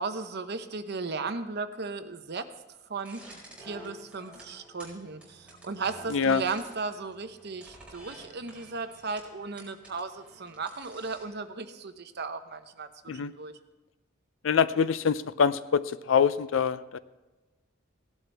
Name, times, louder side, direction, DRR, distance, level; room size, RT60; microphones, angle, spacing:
voice 1, 0.0-2.5 2.9-3.2 3.6-12.9 13.1-13.5, right 4 dB, 55° right, 9 dB, 0.8 m, -36 dB
sound 1, 3.0-11.5, right 1 dB, 5° right, 4.8 m, -51 dB
voice 2, 6.1-6.4 13.1-13.3 14.4-17.0, left 6 dB, 70° left, 15 dB, 0.5 m, -25 dB
17.5 x 11.5 x 3.4 m, 1.1 s
head